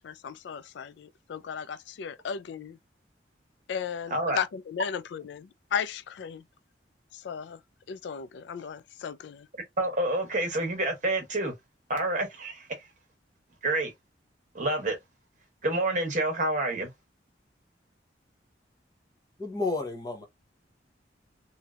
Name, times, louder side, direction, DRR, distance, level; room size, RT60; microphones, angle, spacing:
voice 1, 0.0-2.8 3.7-6.4 7.1-7.6 7.9-9.5, left 7 dB, 75° left, 0.3 m, -35 dB
voice 2, 9.8-11.5 11.9-12.7 13.6-13.9 14.5-15.0 15.6-16.9, right 2 dB, 45° right, 1.1 m, -28 dB
voice 3, 19.4-20.3, left 3 dB, 20° left, 0.8 m, -31 dB
3.1 x 2.7 x 2.2 m
head